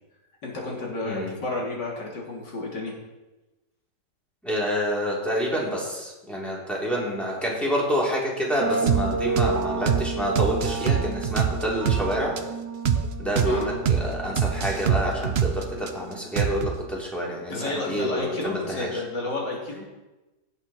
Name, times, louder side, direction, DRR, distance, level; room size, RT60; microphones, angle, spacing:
voice 1, 0.4-3.0 13.4-13.7 17.5-19.9, left 2 dB, 80° left, -2 dB, 3.3 m, -31 dB
voice 2, 1.0-1.3 4.4-12.4 13.2-18.9, equal, ahead, -4 dB, 3.3 m, -28 dB
sound 1, 8.6-16.2, right 4 dB, 80° right, 1.5 m, -32 dB
sound 2, 8.9-9.0 9.4-9.5 9.9-10.0 10.3-12.0 12.4-12.5 12.8-13.0 13.3-13.5 13.8-14.0 14.4-15.9 16.4-16.8, right 8 dB, 55° right, 0.8 m, -23 dB
17.0 x 8.0 x 4.4 m, 1.1 s
omnidirectional pair, 1.9 m